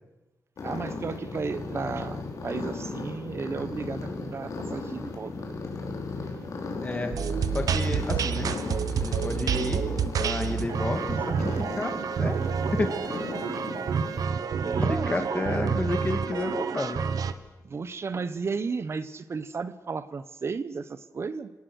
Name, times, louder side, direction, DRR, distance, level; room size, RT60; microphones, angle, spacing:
sound 1, 0.6-14.2, left 3 dB, 65° left, 4.6 m, -36 dB
voice 1, 0.6-5.3 14.6-15.3 17.6-21.5, right 5 dB, 45° right, 13 dB, 1.0 m, -34 dB
voice 2, 6.8-7.1 7.5-8.5 9.0-9.9 10.2-13.3 14.8-17.0, left 2 dB, 25° left, 6 dB, 2.4 m, -31 dB
sound 2, 7.1-17.3, right 6 dB, 80° right, 1.2 m, -28 dB
28.5 x 18.0 x 6.5 m, 1.1 s
wide cardioid pair, 135°, 6 cm